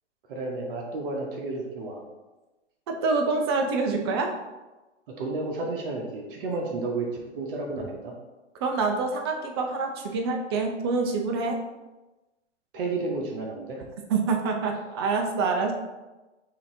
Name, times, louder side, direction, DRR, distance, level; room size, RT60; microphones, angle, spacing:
voice 1, 0.3-2.0 5.1-7.1 7.3-8.1 12.7-13.8, right 3 dB, 45° right, 0 dB, 0.9 m, -31 dB
voice 2, 2.9-4.3 8.6-11.6 14.1-15.7, right 4 dB, 25° right, 3 dB, 0.3 m, -26 dB
5.5 x 2.7 x 2.6 m, 1.1 s
figure-of-eight pair, 120°, 36 cm